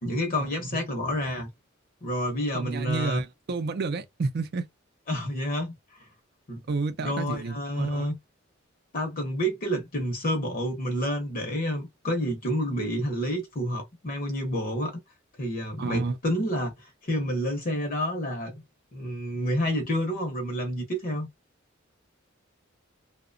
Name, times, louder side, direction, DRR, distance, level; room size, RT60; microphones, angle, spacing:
voice 1, 0.0-1.5 2.0-3.2 5.1-5.7 6.5-6.6 7.0-8.2 8.9-15.0 15.4-18.6 18.9-21.3, equal, 45° left, 0.7 m, -29 dB
voice 2, 2.4-4.6 6.7-8.1 15.8-16.2, right 3 dB, 50° right, 0.4 m, -30 dB
2.8 x 2.1 x 2.5 m
head